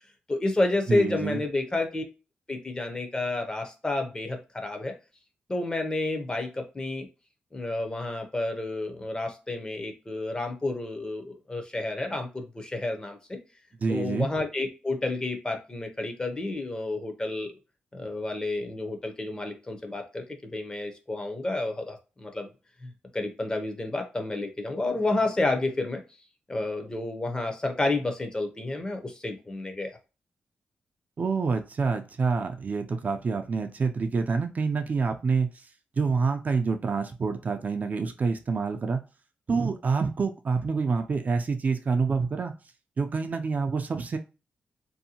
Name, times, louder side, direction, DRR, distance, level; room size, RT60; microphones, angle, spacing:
voice 1, 0.3-2.0 2.5-4.9 5.5-7.1 7.5-13.4 13.9-17.5 17.9-22.5 22.8-26.0 26.5-29.9, left 2 dB, 20° left, 5 dB, 0.6 m, -30 dB
voice 2, 0.9-1.4 13.8-14.3 31.2-35.5 36.0-39.0 39.5-42.5 43.0-44.2, right 4 dB, 45° right, 6 dB, 0.3 m, -27 dB
2.6 x 2.1 x 2.7 m, 0.31 s
cardioid pair, 85°, 4 cm